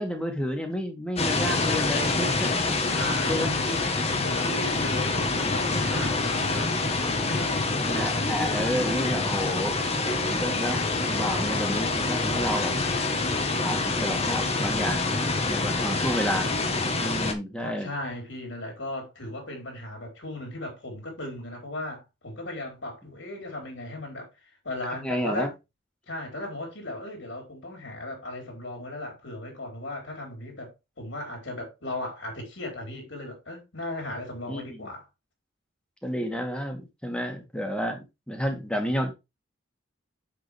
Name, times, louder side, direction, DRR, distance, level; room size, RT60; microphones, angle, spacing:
voice 1, 0.0-2.7 3.3-3.5 5.9-6.1 7.8-9.8 10.3-12.8 13.6-15.2 15.5-16.5 17.0-17.9 25.0-25.5 34.5-34.9 36.0-39.1, equal, 5° left, 2.1 m, -30 dB
sound 1, 1.2-17.3, left 3 dB, 35° left, 1.4 m, -26 dB
voice 2, 2.9-7.7 17.6-24.3 24.6-25.5 26.1-35.0, left 1 dB, 75° left, 4.2 m, -36 dB
7.5 x 6.8 x 3.4 m
head